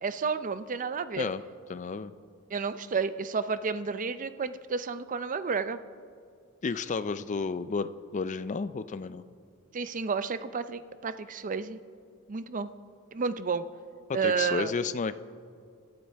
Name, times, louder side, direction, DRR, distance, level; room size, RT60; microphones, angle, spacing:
voice 1, 0.0-1.3 2.5-5.8 9.7-11.8 12.3-12.7 13.1-13.7 14.1-14.7, right 5 dB, 35° right, 13 dB, 0.5 m, -31 dB
voice 2, 1.7-2.1 6.6-9.2 14.1-15.2, left 4 dB, 35° left, 13 dB, 0.4 m, -32 dB
25.0 x 12.0 x 3.4 m, 2.3 s
head